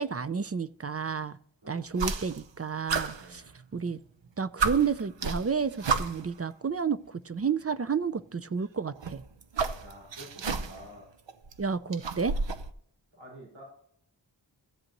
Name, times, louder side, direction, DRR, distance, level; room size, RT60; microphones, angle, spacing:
voice 1, 0.0-1.4 1.7-3.4 3.7-4.0 4.4-9.2 11.6-12.4, right 6 dB, 35° right, 14 dB, 0.4 m, -31 dB
voice 2, 1.6-2.3 3.2-3.5 9.8-11.1 13.1-13.6, equal, 85° right, -3 dB, 4.9 m, -50 dB
sound 1, 1.9-2.6 2.9-4.0 4.3-4.4 4.6-6.4 7.4-7.5 8.9-10.9 11.3-12.7, right 4 dB, 70° right, 0.8 m, -32 dB
14.5 x 7.9 x 2.9 m, 0.64 s
wide cardioid pair, 55°, 46 cm